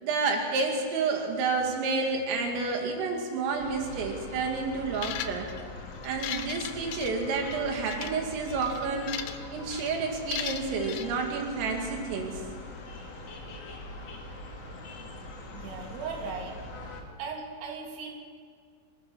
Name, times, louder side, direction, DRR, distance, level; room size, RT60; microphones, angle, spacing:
voice 1, 0.0-5.5 6.0-9.2 9.5-12.4, right 4 dB, 85° right, 1 dB, 5.0 m, -30 dB
sound 1, 3.6-17.0, left 2 dB, 40° left, 2.9 m, -43 dB
sound 2, 4.9-5.6 6.0-7.6 7.9-8.1 8.6-9.4 9.7-9.9 10.3-11.1, left 10 dB, 85° left, 3.5 m, -37 dB
voice 2, 15.5-16.6 17.2-18.1, right 5 dB, 55° right, 0 dB, 4.6 m, -37 dB
25.0 x 21.5 x 6.3 m, 2.1 s
omnidirectional pair, 5.7 m